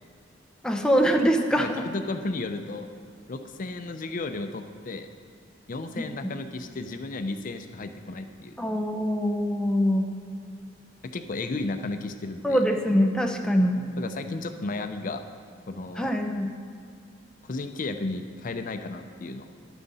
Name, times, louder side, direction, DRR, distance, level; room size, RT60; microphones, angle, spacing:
voice 1, 0.6-1.9 6.0-6.1 8.6-10.1 12.4-13.9 16.0-16.6, equal, 5° left, 3 dB, 0.7 m, -24 dB
voice 2, 1.6-2.9 3.3-5.1 5.7-8.6 11.1-12.6 14.0-15.3 15.7-16.1 17.4-19.5, left 2 dB, 45° left, 8 dB, 0.5 m, -33 dB
11.5 x 9.2 x 4.1 m, 2.4 s
head